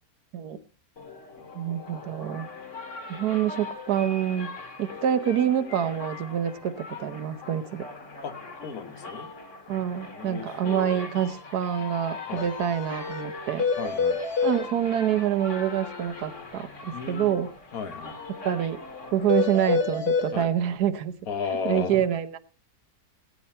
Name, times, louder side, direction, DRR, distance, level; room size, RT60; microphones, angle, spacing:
sound 1, 1.0-20.3, left 4 dB, 50° left, 2.4 m, -41 dB
voice 1, 1.5-2.5 3.1-6.7 7.0-7.9 9.7-13.6 14.4-17.5 18.4-18.8 19.1-21.1 21.6-22.4, right 10 dB, 85° right, 12 dB, 1.5 m, -26 dB
voice 2, 8.6-9.3 10.1-11.1 12.3-12.5 13.8-14.2 16.9-17.5 17.7-18.2 20.3-20.5 21.3-22.1, left 5 dB, 70° left, 9 dB, 1.7 m, -34 dB
sound 2, 12.4-12.5 12.7-12.8 13.1-13.2 13.6-14.6 19.3-20.3, left 5 dB, 90° left, 2.1 m, -25 dB
17.0 x 9.5 x 4.4 m, 0.35 s
omnidirectional pair, 1.6 m